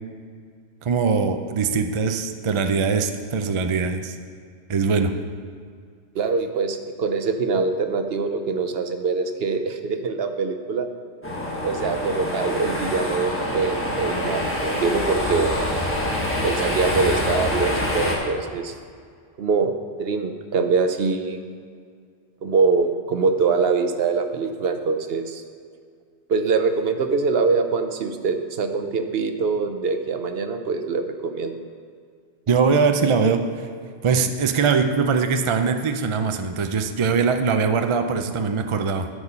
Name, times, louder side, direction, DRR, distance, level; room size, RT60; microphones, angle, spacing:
voice 1, 0.8-4.2 4.7-5.1 32.5-33.7 34.0-39.1, right 5 dB, 45° right, 6 dB, 0.4 m, -22 dB
voice 2, 6.1-10.9 11.6-15.5 16.4-18.7 19.4-19.7 20.0-21.4 22.4-25.4 26.3-31.5, right 4 dB, 65° right, 6 dB, 0.9 m, -23 dB
sound 1, 11.2-18.2, left 1 dB, 10° left, 1.4 m, -26 dB
13.5 x 4.7 x 5.6 m, 2.1 s
omnidirectional pair, 1.2 m